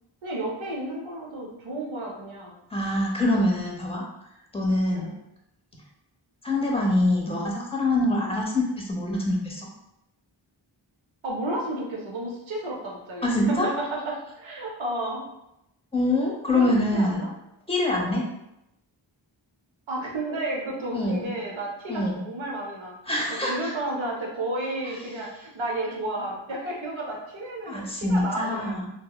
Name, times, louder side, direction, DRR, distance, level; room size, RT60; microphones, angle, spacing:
voice 1, 0.2-2.6 4.9-5.2 8.1-8.3 11.2-15.2 16.5-17.3 17.9-18.2 19.9-23.0 23.4-28.8, right 1 dB, 75° right, -2 dB, 0.7 m, -32 dB
voice 2, 2.7-4.0 4.5-5.1 6.4-9.7 13.2-13.7 15.9-17.2 17.7-18.2 20.9-21.3 21.9-22.2 23.1-23.7 27.7-28.9, left 1 dB, 10° left, -2 dB, 0.7 m, -25 dB
2.9 x 2.0 x 2.2 m, 0.84 s
wide cardioid pair, 40°, 47 cm